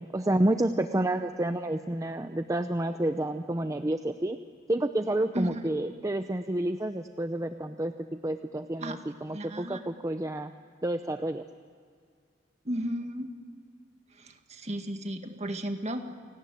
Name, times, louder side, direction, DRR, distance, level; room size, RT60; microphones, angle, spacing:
voice 1, 0.0-4.4 4.7-10.5 10.8-11.4, right 1 dB, 20° right, 8 dB, 0.6 m, -29 dB
voice 2, 9.3-9.8 12.7-13.3 14.2-16.0, equal, 40° right, 6 dB, 1.9 m, -34 dB
28.5 x 19.0 x 9.1 m, 2.1 s
head